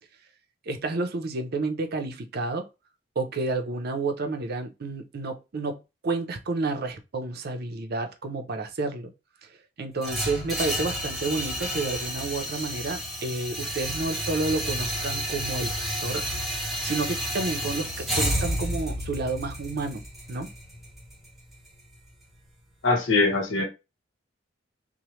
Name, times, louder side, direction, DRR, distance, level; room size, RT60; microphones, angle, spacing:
voice 1, 0.7-2.7 3.2-9.1 9.8-16.3 16.8-20.0 20.3-20.5, right 3 dB, 55° right, 0.5 m, -30 dB
sound 1, 10.0-22.1, equal, ahead, 0.9 m, -31 dB
voice 2, 22.8-23.6, left 3 dB, 85° left, 0.9 m, -22 dB
3.0 x 2.1 x 3.0 m
head